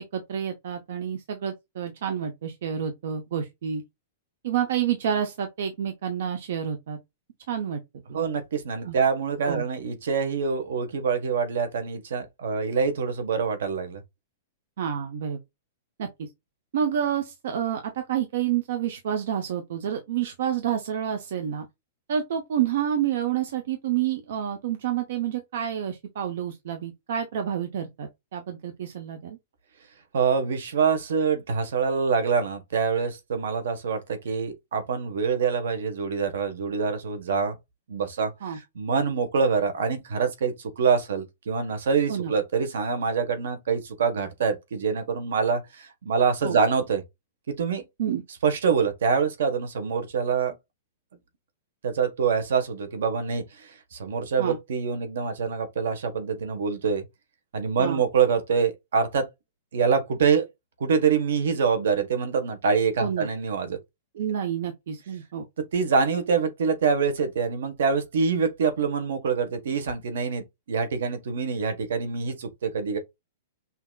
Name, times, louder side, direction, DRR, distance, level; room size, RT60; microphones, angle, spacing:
voice 1, 0.0-3.8 4.4-7.0 7.5-7.8 8.8-9.0 9.4-9.6 14.8-15.4 16.0-16.3 16.7-21.7 22.1-29.4 38.4-38.6 42.1-42.3 46.4-46.6 48.0-48.2 54.4-54.6 57.8-58.0 63.0-63.3 64.1-65.4, right 9 dB, 60° right, 0.8 m, -29 dB
voice 2, 8.1-14.0 30.1-37.5 37.9-47.0 47.6-47.8 48.4-50.5 51.8-57.0 57.5-59.3 59.7-60.5 60.8-63.8 65.7-73.0, right 6 dB, 80° right, 1.3 m, -25 dB
5.8 x 2.8 x 2.3 m
supercardioid pair, 170°, 0 cm